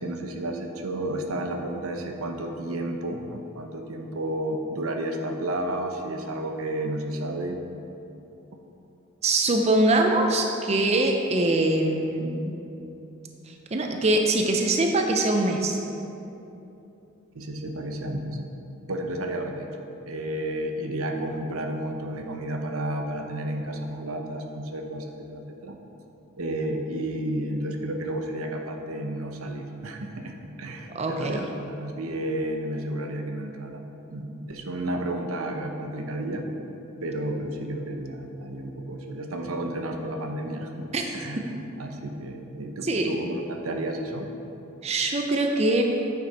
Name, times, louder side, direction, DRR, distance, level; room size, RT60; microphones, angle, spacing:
voice 1, 0.0-7.6 17.3-18.4 18.9-25.8 26.4-33.8 34.1-36.4 37.0-40.7 41.1-44.3, right 1 dB, 85° right, 3 dB, 0.8 m, -32 dB
voice 2, 9.2-12.5 13.5-15.8 30.9-31.4 40.9-41.0 42.8-43.1 44.8-45.8, right 2 dB, 30° right, 3 dB, 0.5 m, -23 dB
8.7 x 6.6 x 4.3 m, 2.9 s
head